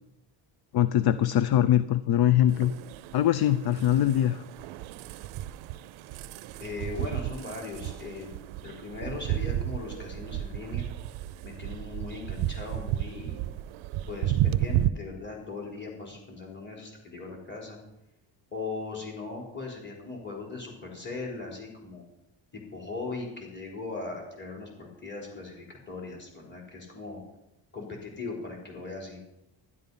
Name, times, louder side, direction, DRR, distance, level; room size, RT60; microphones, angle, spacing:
voice 1, 0.7-2.7 3.1-4.4, left 11 dB, 55° left, 15 dB, 0.5 m, -22 dB
sound 1, 2.5-14.9, right 13 dB, 90° right, 0.6 m, -33 dB
voice 2, 6.6-8.4 8.6-10.9 11.4-13.4 14.1-17.8 18.5-22.0 22.7-27.2 27.7-29.2, left 3 dB, 25° left, -1 dB, 3.9 m, -39 dB
12.0 x 11.0 x 5.5 m, 0.90 s
cardioid pair, 150°, 47 cm